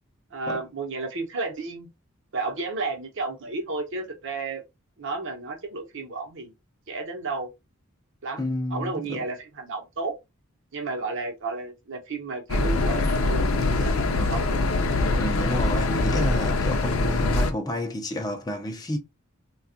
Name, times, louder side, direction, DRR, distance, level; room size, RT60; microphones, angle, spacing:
voice 1, 0.3-1.9 2.3-4.6 5.0-6.5 6.9-7.5 8.2-10.1 10.7-14.6, right 3 dB, 65° right, 0.9 m, -32 dB
voice 2, 8.4-9.3 15.2-19.0, left 1 dB, 20° left, 0.5 m, -30 dB
sound 1, 12.5-17.5, left 2 dB, 75° left, 0.5 m, -23 dB
3.3 x 2.3 x 2.6 m
head